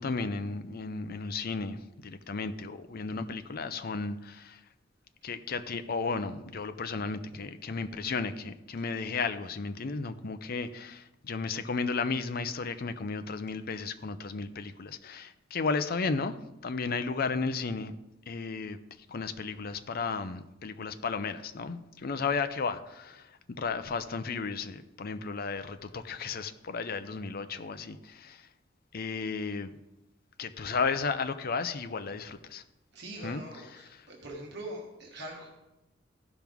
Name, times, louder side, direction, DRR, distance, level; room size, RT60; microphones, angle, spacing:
voice 1, 0.0-4.6 5.2-16.4 16.6-17.9 18.3-18.8 19.1-28.5 28.9-29.7 30.4-32.6 33.2-34.1, left 4 dB, 50° left, 11 dB, 0.6 m, -34 dB
voice 2, 32.9-35.5, right 1 dB, 60° right, -1 dB, 1.4 m, -43 dB
15.0 x 6.0 x 3.5 m, 0.96 s
head